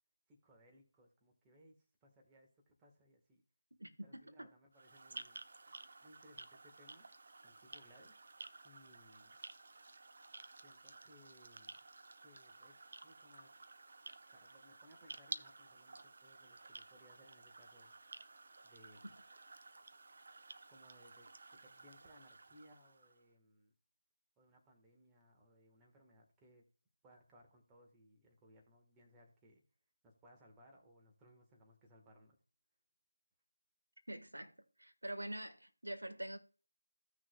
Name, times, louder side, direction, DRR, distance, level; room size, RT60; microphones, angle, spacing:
voice 1, 0.3-3.4 4.0-5.4 6.0-7.1 7.4-8.1 8.6-9.4 10.6-11.9 12.2-13.6 14.3-17.9 18.6-19.1 20.7-23.7 24.4-26.7 27.0-29.6 30.0-32.4, equal, 10° right, 1.3 m, -65 dB
voice 2, 3.8-4.2 34.1-34.5 34.8-36.4, right 1 dB, 85° right, 1.5 m, -45 dB
sound 1, 4.7-23.2, right 3 dB, 50° right, 0.7 m, -54 dB
16.0 x 6.2 x 2.2 m
figure-of-eight pair, 160°, 0 cm